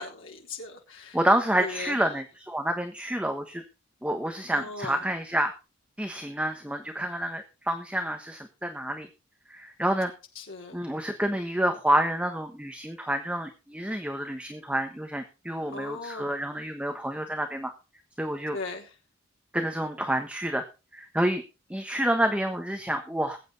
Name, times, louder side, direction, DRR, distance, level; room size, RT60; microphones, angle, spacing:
voice 1, 0.0-1.2 1.6-2.0 4.5-5.0 10.4-10.8 15.7-16.3 18.5-18.9, left 3 dB, 85° left, 0 dB, 3.7 m, -38 dB
voice 2, 1.1-3.6 4.0-5.5 6.0-9.1 9.5-10.1 10.7-17.7 18.2-18.6 19.5-20.6 20.9-21.4 21.7-23.4, right 1 dB, 5° right, 5 dB, 1.3 m, -28 dB
20.5 x 8.9 x 4.1 m, 0.31 s
head